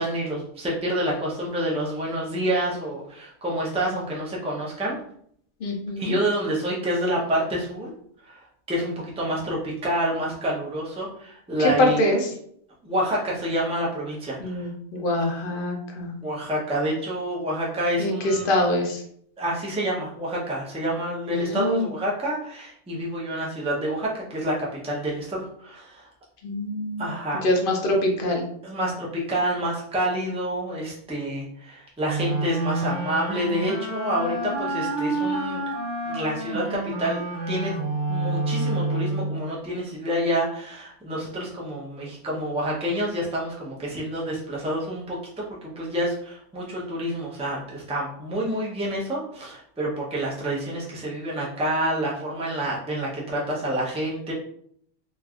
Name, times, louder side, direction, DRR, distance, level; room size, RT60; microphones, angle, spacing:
voice 1, 0.0-5.0 6.0-7.9 8.2-12.0 12.8-14.7 15.1-15.4 16.2-18.4 19.4-26.1 27.0-27.4 28.6-35.6 36.1-37.7 38.1-45.4 45.8-54.3, right 1 dB, 5° right, -5 dB, 0.5 m, -28 dB
voice 2, 5.6-6.1 11.6-12.3 14.4-16.1 18.0-19.0 21.3-21.9 26.4-27.1 27.4-28.4, left 1 dB, 55° left, 1 dB, 0.8 m, -24 dB
sound 1, 32.0-39.5, right 2 dB, 85° right, 1.1 m, -28 dB
3.1 x 2.5 x 2.4 m, 0.66 s
omnidirectional pair, 1.2 m